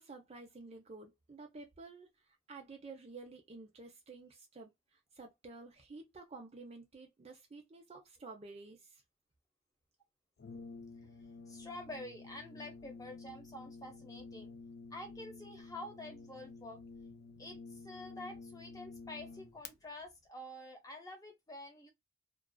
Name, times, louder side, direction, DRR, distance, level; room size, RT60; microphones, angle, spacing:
voice 1, 0.0-9.0, right 3 dB, 30° right, 0.4 m, -51 dB
Brass instrument, 10.4-19.7, left 4 dB, 50° left, 0.4 m, -51 dB
voice 2, 11.5-14.5 14.9-16.8 17.4-21.9, left 1 dB, 15° left, 0.7 m, -48 dB
2.4 x 2.3 x 2.2 m
head